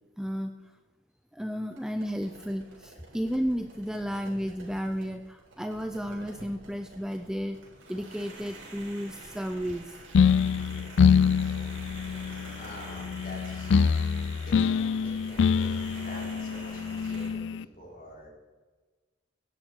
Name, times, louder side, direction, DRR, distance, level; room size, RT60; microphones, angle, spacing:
voice 1, 0.2-0.5 1.3-7.6 7.9-10.0, equal, 5° right, 7 dB, 0.4 m, -33 dB
sound 1, 1.7-17.3, right 2 dB, 85° right, 4.1 m, -48 dB
sound 2, 10.1-17.6, left 6 dB, 70° left, 0.4 m, -25 dB
voice 2, 12.6-14.2 14.4-18.3, left 1 dB, 45° left, -2 dB, 3.7 m, -46 dB
16.5 x 11.0 x 4.5 m, 1.3 s
head